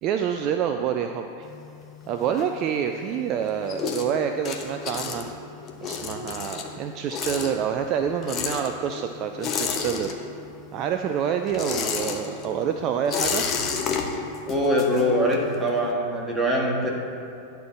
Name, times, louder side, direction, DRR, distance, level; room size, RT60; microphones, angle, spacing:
voice 1, 0.0-1.5 2.1-5.3 5.8-10.2 10.7-13.4, right 8 dB, 35° right, 6 dB, 0.4 m, -27 dB
sound 1, 1.4-3.0 3.4-10.6 10.9-15.6, left 6 dB, 30° left, 0.9 m, -31 dB
voice 2, 14.5-16.9, equal, 10° right, -3 dB, 1.8 m, -23 dB
10.5 x 4.5 x 7.2 m, 2.7 s
figure-of-eight pair, 90°, 0 cm